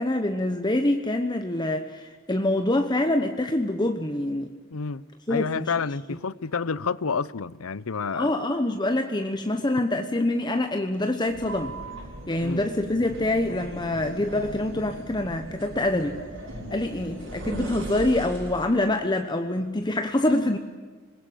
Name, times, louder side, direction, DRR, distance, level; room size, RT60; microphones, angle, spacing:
voice 1, 0.0-4.5 5.3-5.7 8.1-11.7 12.3-16.2 16.7-20.6, left 1 dB, 20° left, 1.1 m, -25 dB
voice 2, 4.7-5.0 5.3-8.3 12.4-12.6, left 5 dB, 85° left, 0.7 m, -29 dB
sound 1, 11.3-18.8, right 1 dB, 65° right, 6.9 m, -38 dB
26.5 x 21.0 x 8.8 m
head